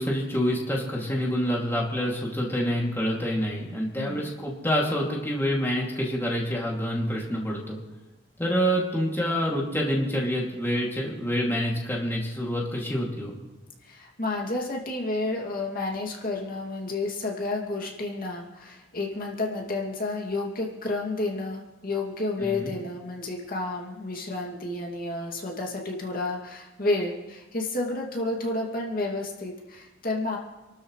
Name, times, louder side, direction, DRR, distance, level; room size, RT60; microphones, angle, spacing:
voice 1, 0.0-7.8 8.4-13.3 22.4-22.7, equal, 10° left, -3 dB, 2.6 m, -27 dB
voice 2, 4.0-4.3 13.8-30.4, left 2 dB, 45° left, -1 dB, 2.5 m, -31 dB
28.0 x 13.0 x 3.3 m, 1.1 s
head